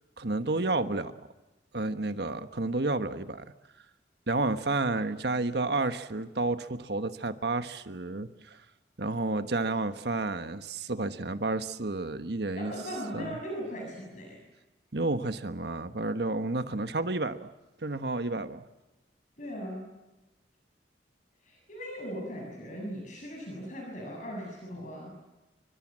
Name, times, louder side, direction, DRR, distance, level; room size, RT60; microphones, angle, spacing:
voice 1, 0.2-1.1 1.7-3.4 4.3-8.6 9.0-12.7 13.1-13.4 14.9-17.5 17.8-18.6, right 2 dB, 65° right, 10 dB, 1.3 m, -31 dB
voice 2, 12.6-14.4 19.4-19.9 21.4-25.3, equal, 45° left, 0 dB, 7.5 m, -39 dB
28.5 x 24.5 x 7.6 m, 1.0 s
head